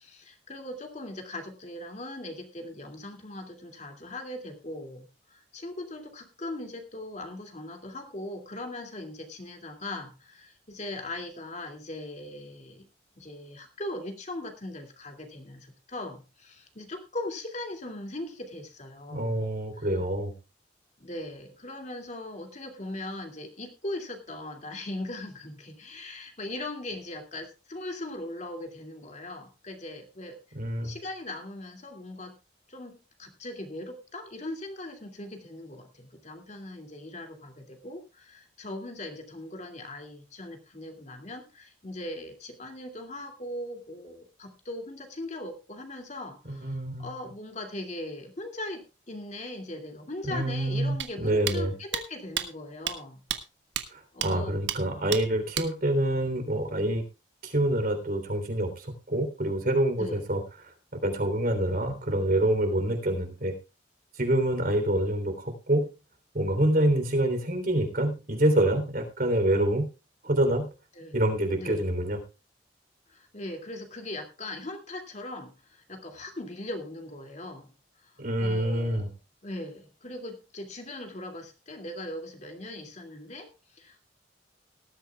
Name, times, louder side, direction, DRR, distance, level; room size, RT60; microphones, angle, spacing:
voice 1, 0.0-12.9 13.2-19.4 19.7-19.9 21.0-30.4 30.8-32.4 32.7-53.2 54.1-54.5 60.0-60.2 70.9-71.2 71.6-71.9 73.1-77.7 78.0-79.1 79.4-84.0, left 1 dB, 40° left, 4 dB, 2.4 m, -39 dB
voice 2, 19.1-20.3 30.5-30.9 46.5-47.1 50.3-51.7 54.2-57.0 57.4-60.4 60.9-63.5 64.2-65.9 66.3-69.8 70.2-70.7 71.1-72.2 78.2-79.1, right 1 dB, 50° right, 6 dB, 3.4 m, -26 dB
sound 1, 51.0-51.1 51.5-51.6 51.9-52.0 52.4-52.5 52.9-53.0 53.3-53.4 53.8-53.9 54.2-54.3 54.7-54.8 55.1-55.2 55.5-55.7, right 10 dB, 75° right, 1.4 m, -30 dB
19.0 x 13.0 x 2.3 m, 0.29 s
head